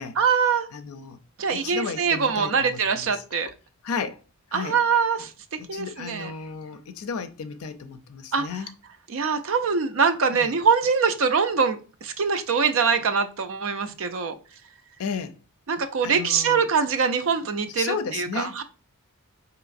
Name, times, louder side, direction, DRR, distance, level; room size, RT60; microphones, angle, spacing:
voice 1, 0.2-0.7 1.4-3.5 4.5-6.3 8.3-8.5 9.1-14.3 15.7-18.6, right 5 dB, 60° right, 0.5 m, -23 dB
voice 2, 0.7-1.2 1.5-3.2 3.8-4.2 4.5-4.8 5.6-8.7 10.3-10.5 15.0-15.4 16.0-16.7 17.7-18.6, left 5 dB, 75° left, 0.4 m, -33 dB
4.8 x 3.0 x 2.5 m
head